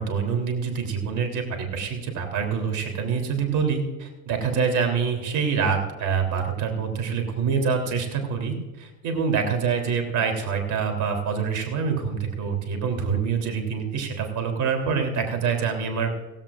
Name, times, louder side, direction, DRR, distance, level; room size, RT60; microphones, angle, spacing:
voice 1, 0.0-16.1, right 6 dB, 45° right, 4 dB, 3.5 m, -26 dB
16.5 x 16.0 x 2.5 m, 1.2 s
hypercardioid pair, 90°, 41 cm